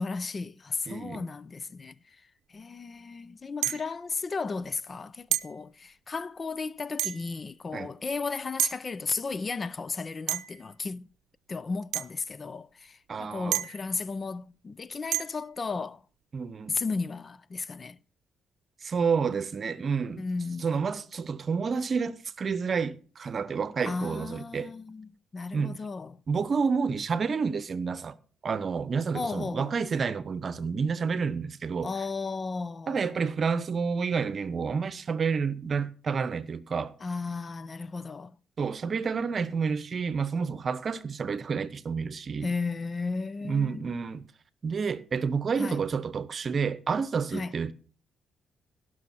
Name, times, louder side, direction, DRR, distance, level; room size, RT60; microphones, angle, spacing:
voice 1, 0.0-2.2 2.5-11.1 11.5-16.0 16.7-18.0 20.2-20.7 23.8-26.2 29.1-29.8 31.8-33.1 37.0-38.4 42.4-43.9 45.6-45.8 47.3-47.5, left 4 dB, 35° left, 0.5 m, -34 dB
voice 2, 0.9-1.2 7.7-7.9 13.1-13.6 16.3-16.8 18.8-20.2 20.6-24.7 25.5-25.8 26.3-28.2 28.4-31.9 32.9-36.9 38.6-42.5 43.4-44.3 44.6-47.7, right 5 dB, 45° right, 0.9 m, -29 dB
sound 1, 3.6-4.0 5.3-5.6 7.0-7.4 8.6-8.8 10.3-10.7 11.9-12.1 13.5-13.9 15.1-15.4, right 13 dB, 90° right, 0.6 m, -30 dB
17.0 x 6.3 x 4.4 m
cardioid pair, 90°, 0 cm